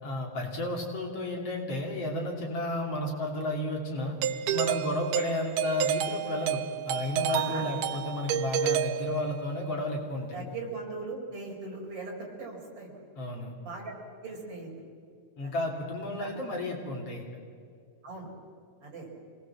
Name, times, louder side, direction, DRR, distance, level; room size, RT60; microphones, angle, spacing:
voice 1, 0.0-4.1 4.5-6.6 6.9-10.4 13.2-13.5 15.4-17.2, left 1 dB, 50° left, 0 dB, 3.8 m, -32 dB
Doorbell, 4.2-9.6, right 10 dB, 85° right, 2.4 m, -30 dB
voice 2, 7.3-7.8 10.3-13.0 13.7-13.9 14.2-14.9 15.4-15.6 16.2-16.4 18.0-18.3 18.8-19.1, right 3 dB, 45° right, 0 dB, 5.3 m, -40 dB
26.5 x 19.5 x 7.5 m, 2.3 s
omnidirectional pair, 3.7 m